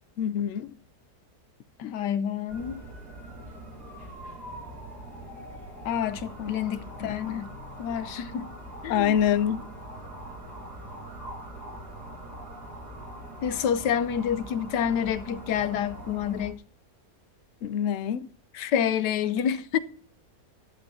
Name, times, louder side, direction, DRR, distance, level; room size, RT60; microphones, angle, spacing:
voice 1, 0.2-0.7 1.8-1.9 6.4-6.5 7.0-7.1 8.9-9.6 17.6-18.3, left 9 dB, 65° left, 0.8 m, -26 dB
voice 2, 1.8-2.8 5.8-7.5 7.8-8.5 8.8-9.1 13.4-16.6 18.5-19.8, left 8 dB, 90° left, 1.4 m, -28 dB
sound 1, 2.5-16.5, right 1 dB, 70° right, 6.7 m, -42 dB
12.0 x 11.0 x 2.7 m
omnidirectional pair, 1.8 m